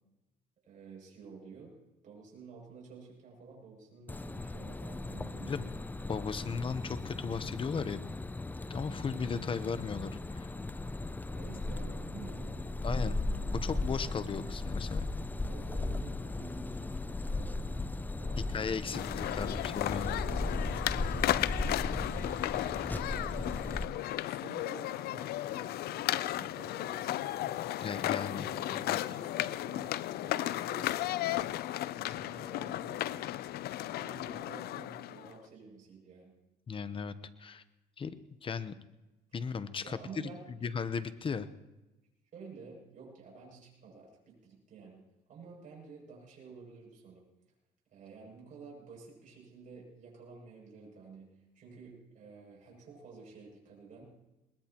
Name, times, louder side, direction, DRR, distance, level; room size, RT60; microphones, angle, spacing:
voice 1, 0.7-1.7 2.0-5.7 9.3-9.6 11.3-13.9 15.5-17.0 17.3-17.8 18.2-19.5 20.3-20.8 21.5-22.3 22.9-23.6 24.2-27.6 28.3-31.0 32.0-33.4 33.8-36.3 39.8-40.7 42.3-45.0 45.3-47.2 47.9-51.3 51.5-54.0, right 5 dB, 50° right, -3 dB, 7.3 m, -51 dB
sound 1, 4.1-23.9, left 2 dB, 10° left, 0.5 m, -37 dB
voice 2, 6.1-8.0 8.7-10.5 12.8-13.2 13.6-15.1 18.5-20.1 27.8-28.5 28.7-29.0 36.7-37.1 37.4-37.6 38.0-38.2 38.4-38.7 39.3-40.3 40.6-41.5, left 5 dB, 30° left, 13 dB, 0.9 m, -36 dB
sound 2, 18.9-35.4, left 14 dB, 70° left, 0.5 m, -34 dB
22.0 x 20.0 x 3.0 m, 1.0 s
cardioid pair, 110°, 17 cm